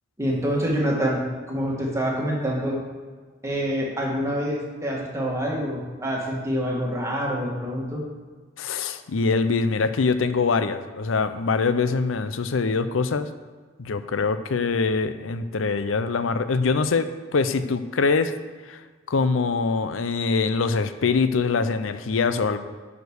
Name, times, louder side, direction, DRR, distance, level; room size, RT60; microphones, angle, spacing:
voice 1, 0.2-1.2 1.5-2.8 3.4-8.0, equal, 15° right, -3 dB, 1.9 m, -26 dB
voice 2, 8.6-13.3 13.8-18.3 18.7-18.8 19.1-22.6, left 4 dB, 90° left, 11 dB, 0.6 m, -23 dB
9.4 x 5.1 x 6.4 m, 1.4 s
head